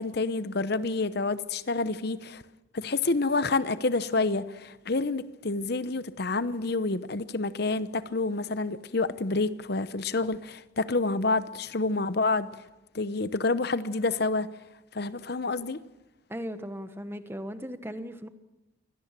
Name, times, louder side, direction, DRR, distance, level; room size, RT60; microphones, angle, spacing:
voice 1, 0.0-2.4 2.7-12.5 12.9-14.5 14.9-15.8, left 3 dB, 55° left, 0.9 m, -28 dB
voice 2, 16.3-18.3, equal, 10° right, 1.2 m, -37 dB
24.0 x 17.5 x 7.4 m
head